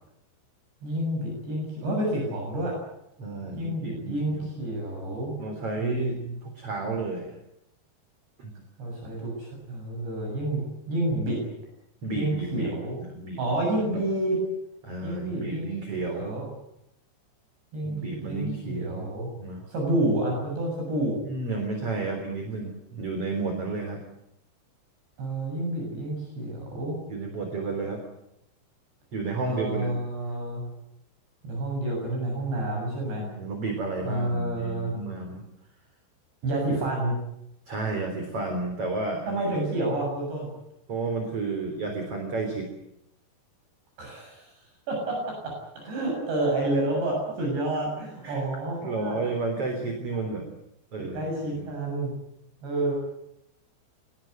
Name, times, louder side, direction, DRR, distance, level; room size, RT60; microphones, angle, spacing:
voice 1, 0.8-2.7 3.6-5.3 5.8-6.4 6.9-7.0 8.8-11.4 12.1-13.0 13.4-14.4 15.0-16.5 17.7-19.3 19.7-21.2 25.2-27.0 29.4-30.7 31.4-33.3 34.0-35.0 36.4-37.2 39.3-40.5 44.0-44.5 44.9-45.2 45.4-49.2 50.1-50.2 51.0-52.1 52.6-52.9, right 1 dB, 60° right, 0 dB, 9.2 m, -29 dB
voice 2, 3.2-4.5 5.4-6.2 6.4-7.4 8.4-8.5 12.0-13.4 14.8-16.5 17.8-19.1 19.4-19.6 21.3-24.0 27.1-28.0 29.1-29.9 33.2-35.4 37.7-39.6 40.9-42.7 48.2-48.4 48.8-50.4 50.9-51.2 51.5-51.7, right 3 dB, 30° right, 4 dB, 4.0 m, -32 dB
25.0 x 20.0 x 9.4 m, 0.82 s
omnidirectional pair, 5.6 m